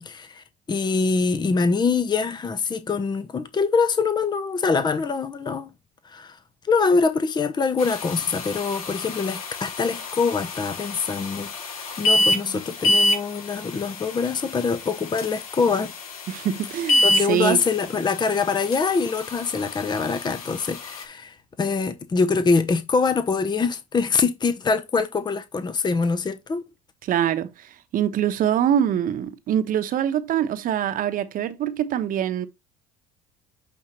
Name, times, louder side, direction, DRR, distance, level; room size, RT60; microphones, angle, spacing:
voice 1, 0.0-5.7 6.0-6.4 6.6-11.5 12.0-15.9 17.0-26.6, left 4 dB, 25° left, 0.9 m, -24 dB
sound 1, 7.8-21.0, left 1 dB, 85° left, 1.2 m, -28 dB
voice 2, 12.3-12.6 16.3-17.6 27.0-32.5, right 10 dB, 50° right, 1.0 m, -24 dB
8.6 x 3.8 x 3.0 m
hypercardioid pair, 65°, 18 cm